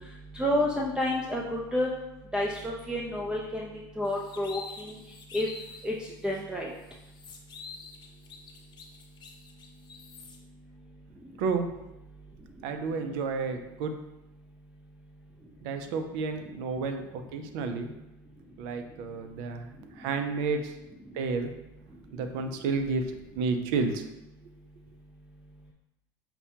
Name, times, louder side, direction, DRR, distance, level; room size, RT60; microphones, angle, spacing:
voice 1, 0.3-1.9 2.3-3.7 4.0-4.6 4.9-5.0 5.3-5.5 5.8-5.9 6.2-6.7, left 1 dB, 5° right, -2 dB, 0.4 m, -29 dB
sound 1, 4.0-5.9 6.3-6.4 6.8-10.4, left 4 dB, 40° left, 0.7 m, -47 dB
voice 2, 12.6-13.9 15.6-17.0 17.3-17.9 18.6-19.7 20.0-20.6 21.2-21.5 22.1-23.0 23.4-24.0, right 4 dB, 70° right, 6 dB, 0.5 m, -30 dB
5.5 x 2.2 x 2.8 m, 0.93 s
hypercardioid pair, 85°, 12 cm